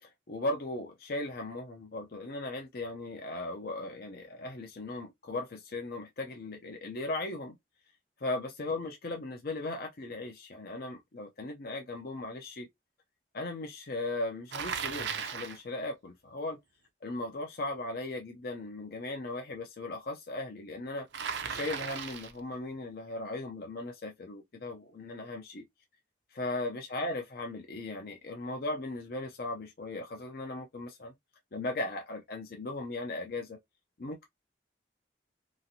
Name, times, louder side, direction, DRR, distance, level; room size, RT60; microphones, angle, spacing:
voice 1, 0.0-7.6 8.2-12.7 13.3-16.6 17.0-25.6 26.3-31.1 31.5-33.6 34.0-34.2, left 2 dB, 55° left, 0.5 m, -37 dB
Bicycle, 14.5-15.6 21.1-22.4, right 6 dB, 70° right, 0.5 m, -36 dB
2.9 x 2.5 x 2.6 m
head